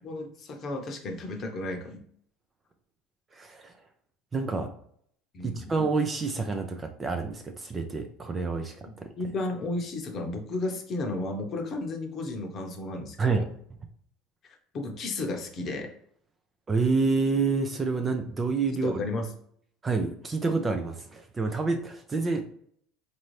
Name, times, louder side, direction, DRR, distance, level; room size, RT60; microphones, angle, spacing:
voice 1, 0.0-2.0 5.3-5.7 8.9-13.4 14.7-15.9 18.8-19.3, left 2 dB, 35° left, 3 dB, 0.8 m, -33 dB
voice 2, 3.3-3.7 4.3-4.7 5.4-9.1 13.2-13.5 16.7-19.0 19.8-22.4, right 4 dB, 20° right, 6 dB, 0.4 m, -28 dB
4.2 x 2.6 x 3.1 m, 0.64 s
supercardioid pair, 135°, 0 cm